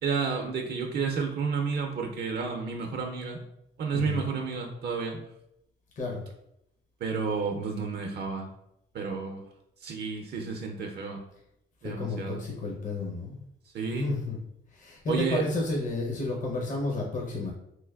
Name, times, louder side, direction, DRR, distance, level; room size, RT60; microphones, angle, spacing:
voice 1, 0.0-3.4 3.8-5.2 7.0-8.5 8.9-9.4 9.8-11.2 11.8-12.4 13.7-14.1 15.1-15.4, right 5 dB, 55° right, 3 dB, 0.5 m, -31 dB
voice 2, 11.8-13.4 13.9-14.4 14.7-17.5, left 2 dB, 40° left, -1 dB, 0.6 m, -31 dB
3.1 x 3.0 x 2.3 m, 0.80 s
cardioid pair, 90°, 20 cm